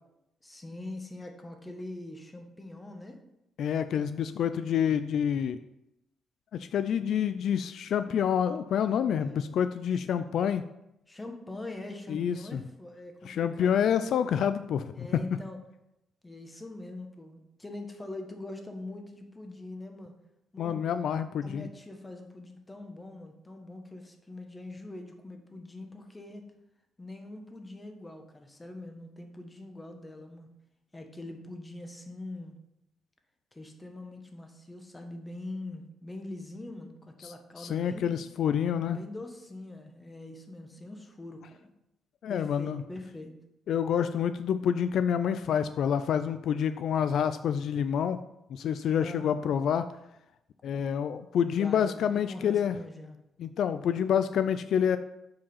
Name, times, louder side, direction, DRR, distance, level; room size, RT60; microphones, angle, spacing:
voice 1, 0.4-3.2 9.2-9.4 9.9-10.0 11.1-13.9 14.9-15.6 16.2-20.1 20.5-20.9 21.4-26.5 27.0-30.5 30.9-32.6 33.5-38.1 38.9-41.7 42.3-43.3 49.0-49.3 51.5-53.2, left 2 dB, 15° left, 4 dB, 1.4 m, -43 dB
voice 2, 3.6-5.6 6.6-10.6 12.1-12.6 13.3-15.1 20.6-21.7 37.2-39.0 42.2-42.8 43.7-48.2 48.5-49.8 50.6-52.8 53.4-55.0, left 8 dB, 70° left, 11 dB, 0.3 m, -28 dB
7.3 x 5.0 x 5.5 m, 0.86 s
cardioid pair, 90°, 0 cm